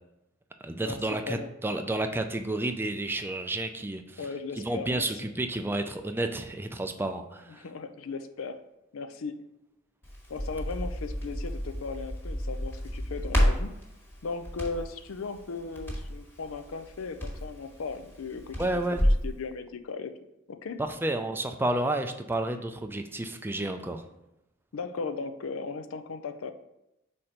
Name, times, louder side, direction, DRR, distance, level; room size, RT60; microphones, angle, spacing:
voice 1, 0.6-4.2 4.6-7.7 18.6-19.0 20.8-24.0, right 2 dB, 10° right, 6 dB, 0.4 m, -31 dB
voice 2, 4.2-5.0 7.5-8.6 8.9-9.4 10.3-13.7 14.2-18.8 19.2-20.1 20.5-20.8 24.7-26.5, left 4 dB, 85° left, 9 dB, 0.5 m, -37 dB
Crackle, 10.0-19.3, equal, 10° left, 1.4 m, -31 dB
4.4 x 4.3 x 5.0 m, 0.88 s
head